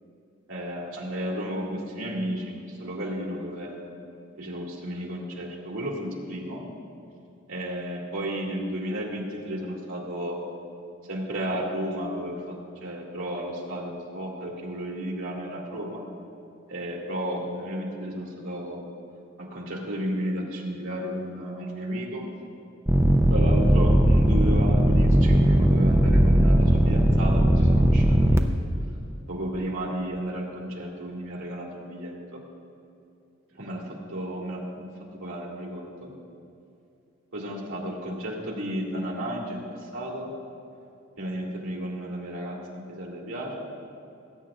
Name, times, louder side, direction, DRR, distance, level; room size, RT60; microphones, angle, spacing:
voice 1, 0.5-3.8 4.4-6.6 7.5-10.4 11.1-12.6 12.8-16.0 16.7-18.8 19.4-22.2 23.3-28.5 29.3-32.4 33.5-33.8 34.1-34.9 35.1-36.1 37.3-40.3 41.2-43.7, equal, 80° right, -3 dB, 2.3 m, -33 dB
sound 1, 22.9-28.4, right 1 dB, 15° right, 0.4 m, -19 dB
20.0 x 9.2 x 2.5 m, 2.7 s
head